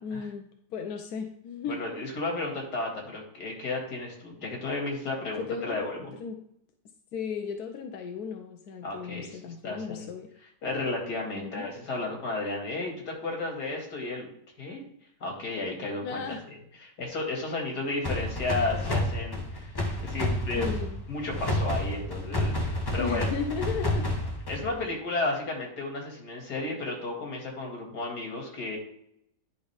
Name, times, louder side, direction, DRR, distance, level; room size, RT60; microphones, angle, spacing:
voice 1, 0.0-1.8 5.4-5.8 6.2-6.4 7.1-10.3 11.3-11.7 16.0-16.4 20.5-21.0 23.0-24.1, left 6 dB, 75° left, 4 dB, 1.2 m, -35 dB
voice 2, 1.7-6.1 8.8-9.4 9.6-10.1 10.6-14.3 14.6-14.8 15.2-16.2 16.5-20.7 21.1-23.3 24.5-28.8, left 2 dB, 90° left, 0 dB, 2.7 m, -33 dB
sound 1, 18.0-24.8, left 1 dB, 20° left, 0.7 m, -30 dB
10.5 x 5.5 x 3.4 m, 0.72 s
omnidirectional pair, 1.7 m